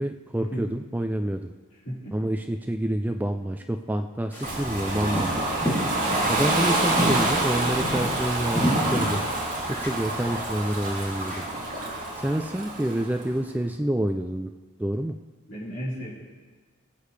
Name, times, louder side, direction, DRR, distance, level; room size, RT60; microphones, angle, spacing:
voice 1, 0.0-1.5 2.1-5.6 6.3-9.2 9.7-11.5 12.2-14.5 14.8-15.2, right 1 dB, 10° right, 5 dB, 0.3 m, -28 dB
voice 2, 1.8-2.2 6.3-6.9 15.5-16.1, equal, 55° left, -8 dB, 4.4 m, -34 dB
sound 1, 4.3-11.4, equal, 10° left, 3.0 m, -31 dB
Ocean, 4.4-13.3, right 2 dB, 35° right, 2.5 m, -27 dB
21.0 x 8.4 x 3.3 m, 1.4 s
head